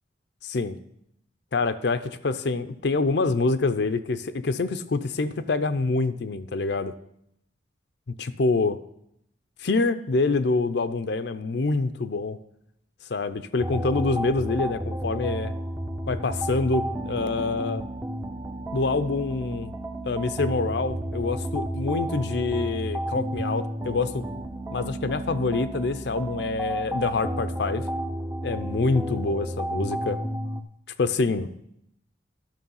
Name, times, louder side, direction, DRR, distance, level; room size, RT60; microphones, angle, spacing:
voice 1, 0.4-0.8 1.5-6.9 8.2-8.8 9.6-12.4 13.1-15.5 16.1-17.8 18.7-19.7 20.0-24.2 24.7-27.8 28.4-30.2 31.0-31.5, left 3 dB, 60° left, 11 dB, 0.5 m, -26 dB
sound 1, 13.6-30.6, right 1 dB, 15° right, 0.6 m, -32 dB
12.0 x 6.1 x 5.5 m, 0.75 s
head